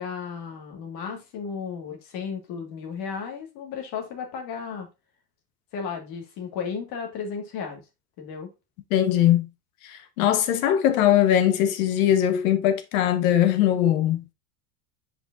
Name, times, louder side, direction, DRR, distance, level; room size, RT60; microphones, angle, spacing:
voice 1, 0.0-4.9 5.7-7.8 8.2-8.5, left 6 dB, 50° left, 1.9 m, -34 dB
voice 2, 8.9-9.5 9.8-14.3, left 11 dB, 70° left, 1.3 m, -21 dB
6.9 x 5.1 x 2.6 m
supercardioid pair, 150°, 44 cm